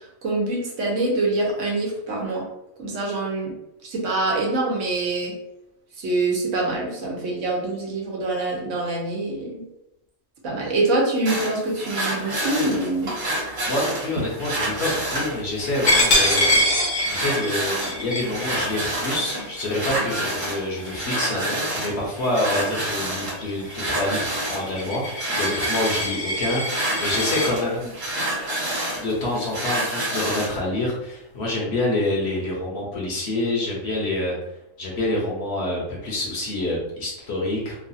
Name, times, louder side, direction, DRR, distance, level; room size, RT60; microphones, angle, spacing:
voice 1, 0.0-2.5 2.8-3.5 3.8-5.3 6.0-9.6 10.4-13.1, right 2 dB, 70° right, -2 dB, 1.1 m, -25 dB
sound 1, 11.2-30.6, right 1 dB, 55° right, 1.4 m, -28 dB
voice 2, 13.7-16.6 17.0-27.9 29.0-34.3 34.8-37.9, left 1 dB, 60° left, -3 dB, 1.0 m, -27 dB
Coin (dropping), 15.9-21.3 21.7-22.0 22.4-27.5, left 1 dB, 85° left, 1.2 m, -25 dB
3.1 x 2.3 x 2.7 m, 0.86 s
omnidirectional pair, 1.4 m